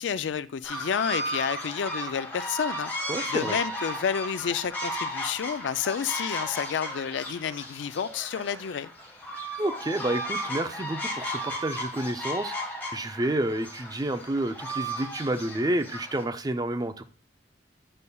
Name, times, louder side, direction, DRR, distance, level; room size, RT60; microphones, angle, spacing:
voice 1, 0.0-2.9 3.3-8.9, left 7 dB, 85° left, 0.4 m, -30 dB
sound 1, 0.6-16.2, equal, 10° left, 1.4 m, -35 dB
voice 2, 3.1-3.6 9.6-12.5 12.9-17.0, right 1 dB, 20° right, 0.5 m, -29 dB
9.8 x 5.4 x 2.3 m
head